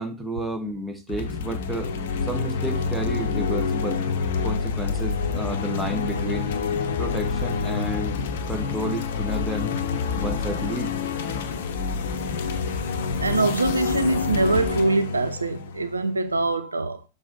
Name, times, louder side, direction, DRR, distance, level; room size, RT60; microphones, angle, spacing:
voice 1, 0.0-1.9 2.3-4.0 4.4-6.5 7.0-8.2 8.5-9.7 10.2-10.9, right 1 dB, 5° right, 1.1 m, -31 dB
sound 1, 1.1-16.5, left 5 dB, 55° left, 0.8 m, -27 dB
voice 2, 13.2-17.0, right 3 dB, 80° right, 0.6 m, -23 dB
7.3 x 3.9 x 5.3 m
figure-of-eight pair, 90°, 0 cm